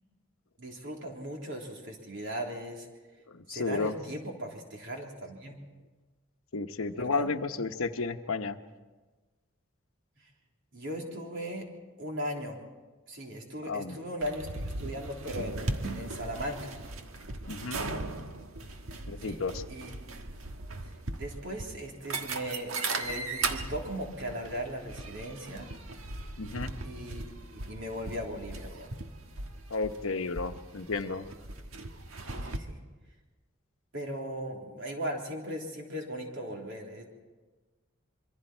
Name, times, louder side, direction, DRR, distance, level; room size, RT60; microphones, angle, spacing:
voice 1, 0.6-2.9 3.5-5.6 7.0-7.3 10.7-11.7 12.0-12.6 13.1-16.7 19.2-19.4 19.7-19.9 21.1-25.7 26.8-28.9 32.3-32.8 33.9-37.0, equal, 60° right, 0 dB, 3.6 m, -38 dB
voice 2, 3.3-3.9 6.5-8.6 13.7-14.0 17.4-17.8 19.1-19.6 26.4-26.7 29.7-31.3, left 4 dB, 85° left, 8 dB, 1.0 m, -32 dB
sound 1, 14.2-32.6, right 3 dB, 90° right, 1.5 m, -38 dB
26.5 x 23.5 x 4.5 m, 1.3 s
head